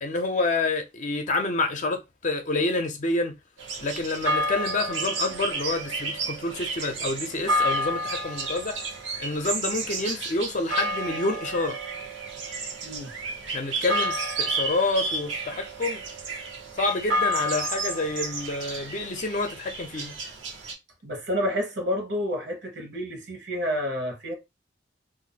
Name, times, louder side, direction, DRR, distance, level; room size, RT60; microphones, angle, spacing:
voice 1, 0.0-3.3 3.8-8.8 9.2-11.8 13.5-16.0 16.8-20.1, left 2 dB, 45° left, 0.6 m, -28 dB
sound 1, 3.6-20.7, right 1 dB, 85° right, 0.9 m, -30 dB
voice 2, 12.8-13.1 21.0-24.3, equal, 65° right, 1.1 m, -29 dB
2.6 x 2.1 x 4.0 m
head